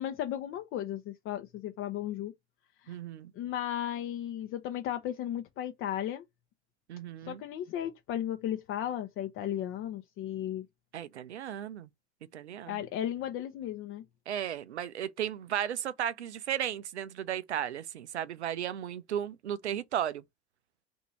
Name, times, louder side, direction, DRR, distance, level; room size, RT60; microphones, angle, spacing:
voice 1, 0.0-2.3 2.8-3.0 3.3-6.2 7.2-10.7 12.7-14.0, left 11 dB, 40° left, 0.6 m, -35 dB
voice 2, 2.9-3.3 6.9-7.4 10.9-11.9 12.3-12.8 14.3-20.2, right 10 dB, 85° right, 0.5 m, -35 dB
2.8 x 2.6 x 4.2 m
hypercardioid pair, 80°, 33 cm